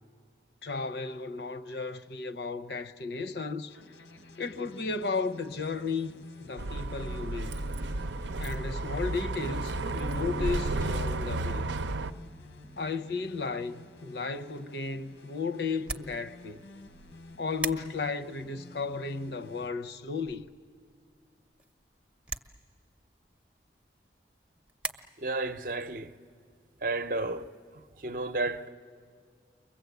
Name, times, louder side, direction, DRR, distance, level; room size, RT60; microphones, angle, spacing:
voice 1, 0.6-3.8 4.4-6.1 6.4-7.7 8.4-11.7 12.8-16.6 17.4-20.5, left 4 dB, 70° left, 0.8 m, -34 dB
sound 1, 3.7-19.7, left 2 dB, 85° left, 1.2 m, -52 dB
Bus, 6.6-12.1, right 2 dB, 90° right, 0.6 m, -32 dB
sound 2, 14.5-24.9, right 3 dB, 5° right, 0.6 m, -44 dB
voice 2, 25.2-26.1 26.8-27.5 28.0-28.7, right 2 dB, 50° right, 0.6 m, -32 dB
30.0 x 22.5 x 8.2 m
head